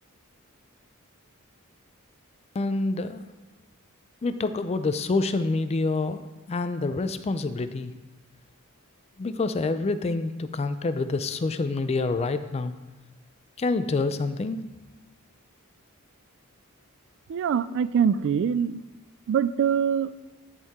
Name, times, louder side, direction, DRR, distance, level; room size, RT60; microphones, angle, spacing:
voice 1, 2.5-3.3 4.2-7.9 9.2-12.7 13.6-14.7, left 3 dB, 30° left, 11 dB, 0.4 m, -27 dB
voice 2, 17.3-18.8 19.3-20.1, right 7 dB, 60° right, 15 dB, 0.3 m, -24 dB
11.0 x 4.5 x 3.6 m, 1.2 s
head